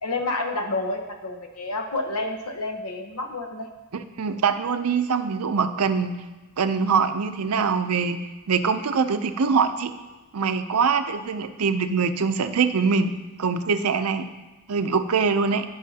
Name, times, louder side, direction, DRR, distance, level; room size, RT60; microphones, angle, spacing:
voice 1, 0.0-3.7, left 2 dB, 80° left, 4 dB, 1.0 m, -29 dB
voice 2, 4.2-6.1 6.6-8.2 8.5-9.9 10.3-14.3 14.7-15.6, right 5 dB, 80° right, 9 dB, 0.6 m, -23 dB
15.5 x 5.6 x 2.8 m, 1.2 s
head